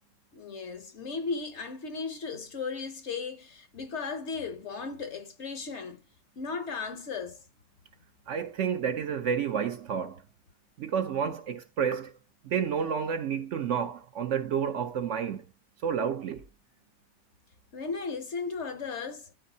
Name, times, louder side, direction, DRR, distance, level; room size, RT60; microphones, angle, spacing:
voice 1, 0.3-6.0 6.4-7.4 17.7-19.3, left 4 dB, 55° left, 0.9 m, -36 dB
voice 2, 8.3-10.2 10.8-12.1 12.4-15.4 15.8-16.5, right 7 dB, 65° right, 0.9 m, -30 dB
11.5 x 4.3 x 2.7 m
omnidirectional pair, 1.6 m